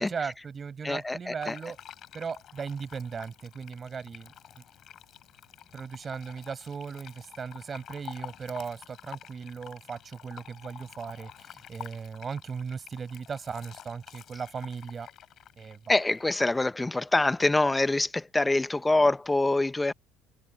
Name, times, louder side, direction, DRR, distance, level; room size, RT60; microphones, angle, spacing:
voice 1, 0.0-1.8 2.1-4.3 5.7-15.1 15.6-15.8, right 6 dB, 30° right, 6.1 m, -37 dB
voice 2, 0.8-1.6 15.9-19.9, left 2 dB, 10° left, 0.9 m, -25 dB
Fill (with liquid), 1.4-16.6, left 10 dB, 50° left, 7.4 m, -48 dB
supercardioid pair, 100°, 0 cm